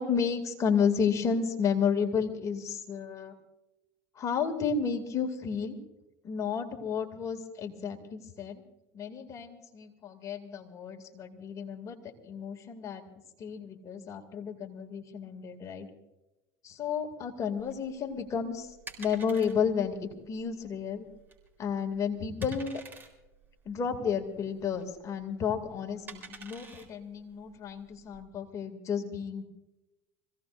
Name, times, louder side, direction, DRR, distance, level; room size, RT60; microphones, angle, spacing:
voice 1, 0.0-3.3 4.1-5.8 6.2-8.6 8.9-13.0 13.4-15.9 16.6-21.1 21.6-22.8 23.6-29.4, left 6 dB, 40° left, 3 dB, 2.6 m, -32 dB
sound 1, 17.6-28.2, right 4 dB, 20° right, 4.0 m, -50 dB
26.0 x 17.0 x 2.6 m, 0.99 s
supercardioid pair, 100°, 9 cm